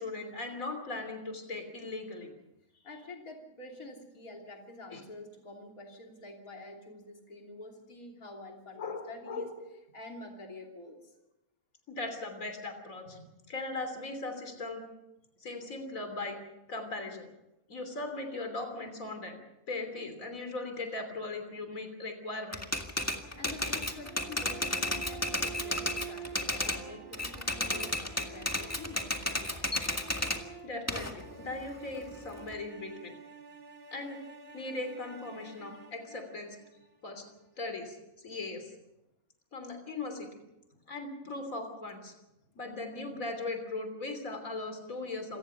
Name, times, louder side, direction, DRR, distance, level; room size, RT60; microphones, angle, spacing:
voice 1, 0.0-2.3 4.9-5.0 8.8-9.5 11.9-14.8 15.4-16.4 16.7-17.3 17.7-19.4 19.7-22.8 30.6-31.1 31.4-33.2 33.9-34.2 34.5-36.6 37.0-37.3 37.6-38.0 38.2-38.7 39.5-40.3 40.9-42.1 42.6-45.4, left 2 dB, 70° left, 6 dB, 3.5 m, -38 dB
voice 2, 2.8-9.5 9.9-11.2 23.4-29.8, left 2 dB, 90° left, 1 dB, 3.5 m, -47 dB
Typewriter, 22.5-26.8 27.1-30.4 30.9-32.5, left 1 dB, 10° left, 1.9 m, -33 dB
sound 1, 23.0-37.2, right 7 dB, 45° right, 2.2 m, -48 dB
27.0 x 18.5 x 5.7 m, 0.92 s
omnidirectional pair, 1.5 m